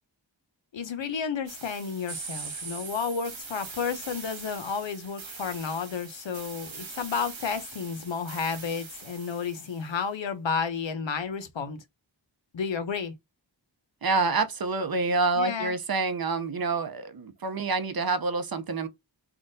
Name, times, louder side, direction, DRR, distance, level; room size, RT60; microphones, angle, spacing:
voice 1, 0.7-11.8 12.5-13.1 15.4-15.8, left 6 dB, 80° left, 0.7 m, -32 dB
sound 1, 1.5-9.9, right 4 dB, 90° right, 0.9 m, -42 dB
voice 2, 14.0-18.9, right 3 dB, 55° right, 0.6 m, -27 dB
3.5 x 2.2 x 2.6 m
wide cardioid pair, 50°, 45 cm